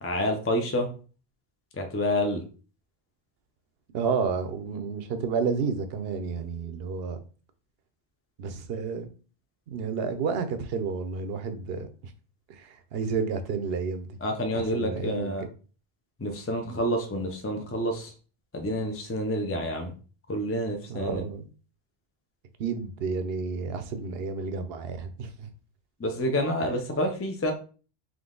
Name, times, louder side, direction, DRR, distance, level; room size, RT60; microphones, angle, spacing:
voice 1, 0.0-0.9 1.7-2.4 14.2-15.4 16.2-18.1 18.5-19.9 20.3-21.2 26.0-27.5, equal, 20° left, 0.4 m, -28 dB
voice 2, 3.9-7.2 8.4-9.1 9.7-11.9 12.5-14.2 14.5-15.3 20.9-21.5 22.6-25.5, right 5 dB, 75° right, 0.8 m, -31 dB
3.8 x 3.1 x 3.7 m
omnidirectional pair, 1.0 m